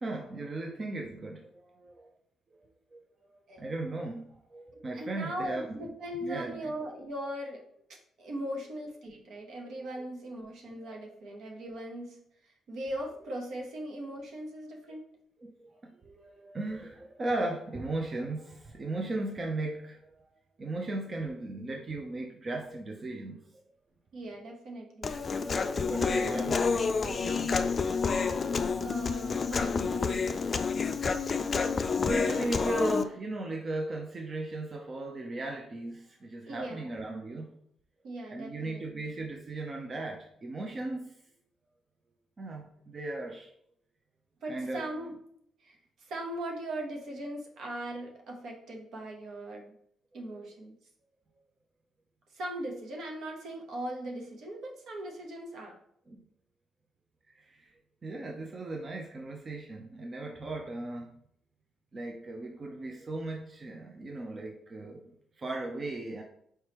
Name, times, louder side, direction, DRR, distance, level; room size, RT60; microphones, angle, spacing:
voice 1, 0.0-2.1 2.9-3.0 3.6-5.9 6.2-6.6 9.7-9.8 10.8-11.0 15.4-20.3 20.6-23.4 25.8-27.8 31.6-37.5 38.3-41.1 42.4-43.5 44.5-44.8 50.2-50.3 56.1-56.2 57.4-57.7 58.0-61.2 61.9-65.0 65.4-66.2, right 2 dB, 40° right, 1 dB, 0.6 m, -37 dB
voice 2, 4.9-7.6 8.2-12.2 12.4-15.1 24.1-25.2 26.0-26.6 28.8-30.2 36.5-36.9 38.0-38.8 44.4-45.1 45.6-49.7 50.1-50.7 52.3-55.8, right 1 dB, 70° right, 0 dB, 1.0 m, -39 dB
Human voice, 25.0-33.0, left 5 dB, 45° left, 0.3 m, -29 dB
4.5 x 3.2 x 3.0 m, 0.69 s
supercardioid pair, 70°, 0 cm